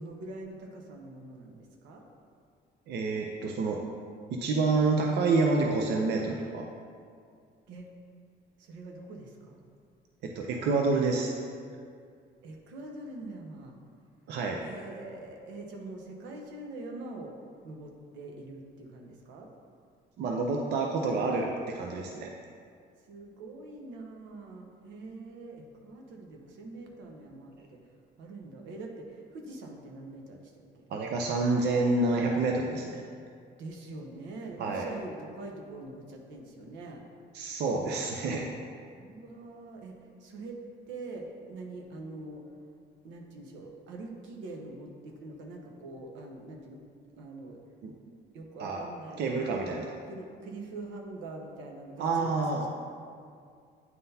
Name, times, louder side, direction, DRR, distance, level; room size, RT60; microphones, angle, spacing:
voice 1, 0.0-2.0 7.7-7.9 8.6-9.6 12.4-13.7 14.6-17.3 17.6-19.5 23.1-27.8 28.2-30.8 33.6-37.0 39.0-40.6 40.9-42.5 43.0-46.8 47.2-47.6 48.3-49.7 50.0-52.7, right 2 dB, 85° right, 1 dB, 0.9 m, -44 dB
voice 2, 2.9-3.8 4.3-6.7 10.2-11.3 14.3-14.6 20.2-22.3 27.6-27.7 30.9-33.0 34.6-34.9 37.3-38.5 47.8-47.9 48.6-48.8 49.2-49.9 52.0-52.6, right 3 dB, 65° right, 0 dB, 0.5 m, -28 dB
9.3 x 3.8 x 2.7 m, 2.2 s
cardioid pair, 135°, 19 cm